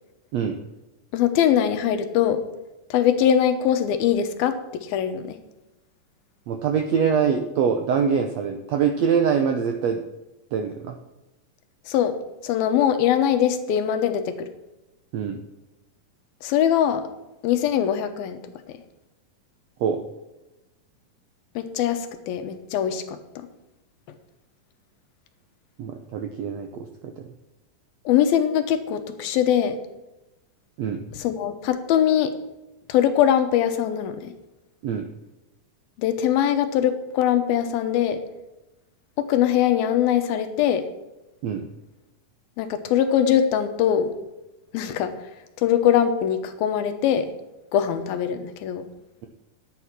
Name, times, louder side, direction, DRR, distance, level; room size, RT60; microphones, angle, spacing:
voice 1, 1.1-2.4 2.9-5.4 11.9-12.1 12.4-14.5 16.4-17.0 17.4-18.4 18.7-18.8 21.6-23.2 28.1-29.8 31.1-32.3 32.9-34.3 36.0-38.2 39.2-40.9 42.6-44.1 44.7-45.1 45.6-47.3 47.7-48.9, left 9 dB, 90° left, 8 dB, 2.9 m, -22 dB
voice 2, 6.5-10.0 10.5-10.9 15.1-15.4 19.8-20.0 25.8-27.2 30.8-31.0 34.8-35.0 41.4-41.6, right 7 dB, 85° right, 5 dB, 1.5 m, -24 dB
11.0 x 9.0 x 5.9 m, 0.98 s
omnidirectional pair, 4.2 m